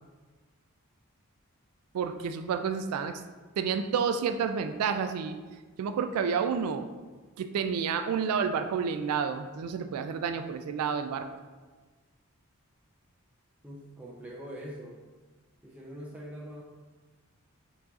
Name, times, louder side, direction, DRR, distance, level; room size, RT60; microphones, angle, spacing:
voice 1, 1.9-3.2 3.6-5.4 5.8-6.9 7.4-11.3, right 6 dB, 80° right, 9 dB, 0.3 m, -30 dB
voice 2, 13.6-15.0 15.6-16.6, equal, 5° right, -4 dB, 0.5 m, -43 dB
4.5 x 2.5 x 4.0 m, 1.3 s
head